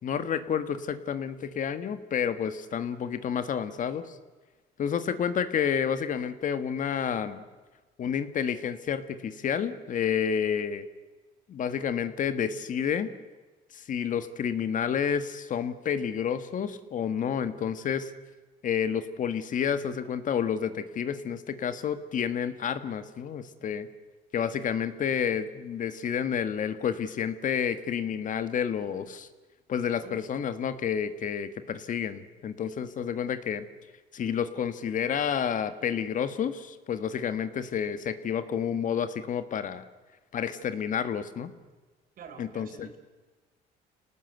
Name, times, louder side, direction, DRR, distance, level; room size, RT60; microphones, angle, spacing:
voice 1, 0.0-4.2 4.8-7.4 8.0-10.8 11.5-13.1 13.7-18.1 18.6-23.9 24.3-29.3 29.7-33.7 34.1-39.8 40.3-41.5 42.4-42.9, left 8 dB, 50° left, 11 dB, 1.7 m, -30 dB
voice 2, 29.9-30.3 42.2-43.0, right 6 dB, 60° right, 7 dB, 4.3 m, -47 dB
27.0 x 18.5 x 8.1 m, 1.3 s
cardioid pair, 110°, 17 cm